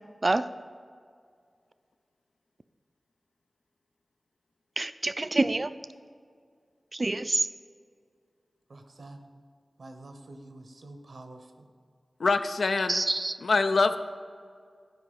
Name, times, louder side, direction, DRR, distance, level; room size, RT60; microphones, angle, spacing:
voice 1, 4.8-5.7 6.9-7.5 12.9-13.4, right 2 dB, 45° right, 12 dB, 0.4 m, -26 dB
voice 2, 8.7-9.3 9.8-11.6, right 2 dB, 80° right, 6 dB, 1.0 m, -47 dB
voice 3, 12.2-13.0 13.4-14.0, left 3 dB, 80° left, 9 dB, 0.4 m, -24 dB
12.0 x 4.8 x 5.5 m, 2.2 s
cardioid pair, 50°, 0 cm